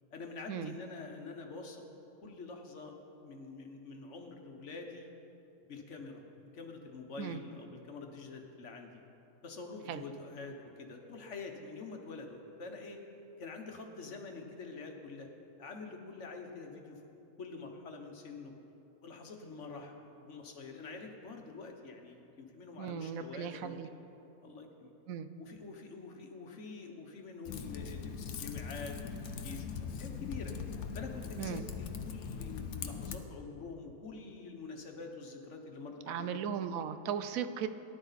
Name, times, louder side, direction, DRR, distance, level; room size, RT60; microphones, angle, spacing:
voice 1, 0.1-1.8 2.2-2.9 3.2-5.1 5.6-6.2 6.5-9.0 9.4-13.0 13.4-15.3 15.6-17.0 17.4-18.5 19.0-23.8 24.4-24.9 25.4-29.7 30.0-30.5 30.9-36.4, left 4 dB, 55° left, 3 dB, 1.5 m, -46 dB
voice 2, 22.8-23.9 25.1-25.3 31.4-31.6 36.1-37.7, right 8 dB, 70° right, 11 dB, 1.1 m, -37 dB
Typing, 27.4-33.2, left 6 dB, 80° left, 1.2 m, -41 dB
18.0 x 11.0 x 4.1 m, 2.9 s
omnidirectional pair, 1.5 m